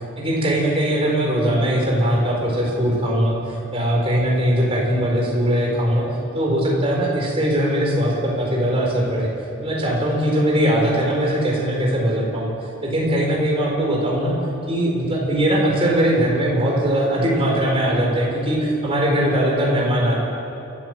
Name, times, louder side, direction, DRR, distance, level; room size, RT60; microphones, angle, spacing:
voice 1, 0.2-6.1 6.3-9.3 9.6-12.5 12.8-14.4 14.7-20.2, equal, 25° right, -2 dB, 4.4 m, -20 dB
28.5 x 12.0 x 7.9 m, 2.8 s
head